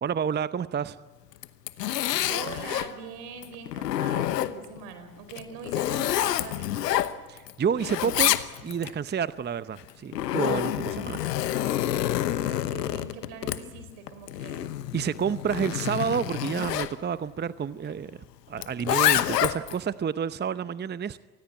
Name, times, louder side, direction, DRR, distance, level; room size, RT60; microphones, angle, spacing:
voice 1, 0.0-1.0 7.3-8.3 8.6-11.2 14.9-18.1 18.5-21.2, right 7 dB, 20° right, 15 dB, 0.7 m, -29 dB
Zipper (clothing), 1.3-2.9 3.4-4.8 5.3-7.5 7.8-8.9 9.8-16.9 18.6-19.8, left 13 dB, 85° left, 1.1 m, -28 dB
voice 2, 2.3-6.9 12.3-14.7, right 5 dB, 75° right, 8 dB, 4.8 m, -42 dB
28.0 x 20.0 x 8.4 m, 1.2 s
hypercardioid pair, 65°, 47 cm